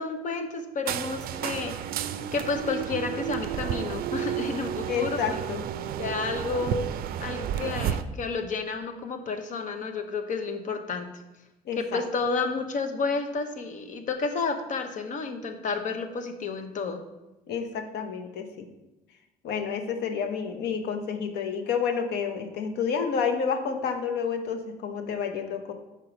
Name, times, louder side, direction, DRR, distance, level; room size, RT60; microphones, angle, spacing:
voice 1, 0.0-5.2 6.0-6.8 7.2-11.1 11.8-17.0, left 4 dB, 50° left, 7 dB, 0.9 m, -31 dB
sound 1, 0.9-8.0, right 10 dB, 60° right, 0.4 m, -32 dB
voice 2, 4.9-5.6 11.7-12.0 17.5-18.7 19.4-25.7, left 6 dB, 75° left, 6 dB, 1.0 m, -29 dB
5.0 x 4.6 x 6.1 m, 0.99 s
cardioid pair, 110°, 17 cm